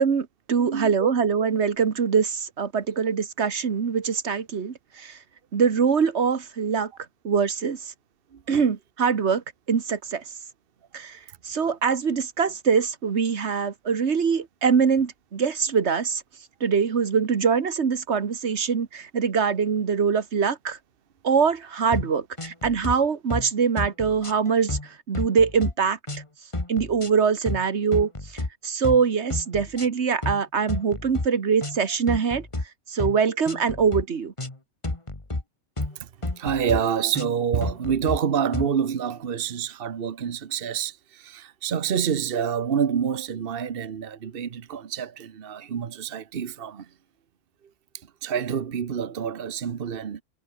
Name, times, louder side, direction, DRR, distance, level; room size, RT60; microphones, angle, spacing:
voice 1, 0.0-5.2 5.5-6.9 7.2-7.9 8.5-10.2 10.9-11.2 11.4-16.2 16.6-20.8 21.2-26.0 26.7-32.5 32.9-34.3, right 6 dB, 80° right, 1.7 m, -23 dB
voice 2, 0.6-1.1 8.3-8.4 36.0-36.1 36.4-46.9 48.2-50.2, right 7 dB, 60° right, 1.2 m, -27 dB
sound 1, 21.9-22.1 22.4-22.9 23.3-23.5 23.8-24.9 25.1-25.7 26.1-26.2 26.5-27.1 27.4-27.6 27.9-28.5 28.8-29.0 29.3-29.9 30.2-30.4 30.7-31.3 31.6-32.6 33.0-33.2 33.4-34.0 34.4-34.6 34.8-35.4 35.8-35.9 36.2-36.8 37.1-37.3 37.6-38.2 38.5-38.7, left 2 dB, 25° left, 2.3 m, -30 dB
omnidirectional pair, 1.1 m